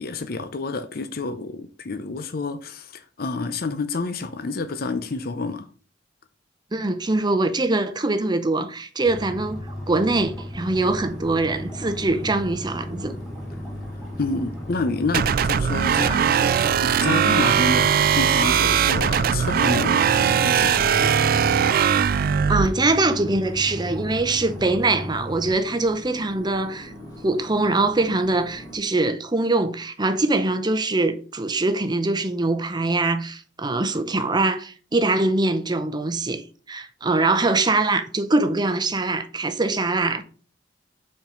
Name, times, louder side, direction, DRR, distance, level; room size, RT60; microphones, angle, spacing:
voice 1, 0.0-5.7 14.2-16.4 16.8-21.1, left 3 dB, 55° left, 0.6 m, -28 dB
voice 2, 6.7-13.1 16.1-16.7 22.5-26.9 27.2-40.2, right 2 dB, 25° right, 0.7 m, -23 dB
sound 1, 9.0-25.5, left 1 dB, ahead, 3.0 m, -36 dB
sound 2, 10.8-28.8, equal, 20° left, 2.5 m, -42 dB
sound 3, 15.1-22.7, right 8 dB, 55° right, 0.3 m, -20 dB
5.8 x 4.5 x 5.0 m
head